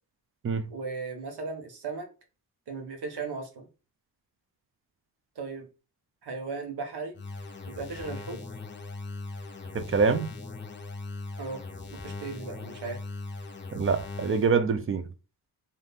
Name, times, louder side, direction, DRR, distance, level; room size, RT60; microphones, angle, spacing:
voice 1, 0.7-2.1 2.7-3.7 5.4-5.7 6.2-7.1 7.7-8.4 11.4-11.6 11.9-13.0, right 4 dB, 70° right, 1.1 m, -36 dB
sound 1, 7.1-14.6, left 3 dB, 30° left, 0.6 m, -40 dB
voice 2, 9.7-10.3 13.7-15.0, right 5 dB, 30° right, 0.5 m, -25 dB
2.6 x 2.6 x 3.5 m
cardioid pair, 75°, 41 cm